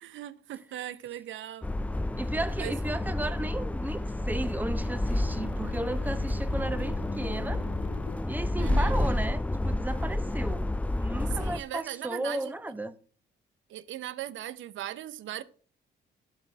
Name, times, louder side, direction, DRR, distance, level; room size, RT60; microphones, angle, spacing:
voice 1, 0.0-1.7 2.6-2.7 8.6-8.9 11.4-12.5 13.7-15.4, right 12 dB, 75° right, 0.8 m, -38 dB
sound 1, 1.6-11.6, left 1 dB, 5° left, 0.4 m, -30 dB
voice 2, 2.1-7.7 8.3-12.9, right 1 dB, 10° right, 0.9 m, -35 dB
sound 2, 5.2-10.4, left 9 dB, 70° left, 0.7 m, -44 dB
11.5 x 4.2 x 7.4 m
cardioid pair, 90°, 20 cm